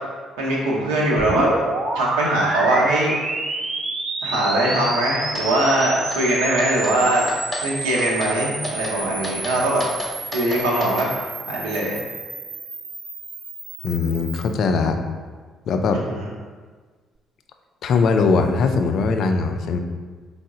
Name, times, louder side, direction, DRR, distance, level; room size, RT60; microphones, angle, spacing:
voice 1, 0.4-1.5 1.9-3.1 4.2-7.3 7.6-9.8 10.3-11.1 11.5-12.0 15.9-16.3, right 1 dB, 70° right, -3 dB, 0.7 m, -21 dB
sound 1, 1.2-14.5, right 2 dB, 40° right, 0.5 m, -30 dB
sound 2, 5.4-5.5 5.8-6.2 6.6-7.0 7.3-7.7 8.0-8.3 8.6-9.0 9.2-11.1, left 1 dB, 20° left, 0.9 m, -32 dB
voice 2, 13.8-15.0 15.7-16.0 17.8-19.8, left 4 dB, 55° left, 5 dB, 0.3 m, -20 dB
4.4 x 2.0 x 3.6 m, 1.5 s
figure-of-eight pair, 45°, 0 cm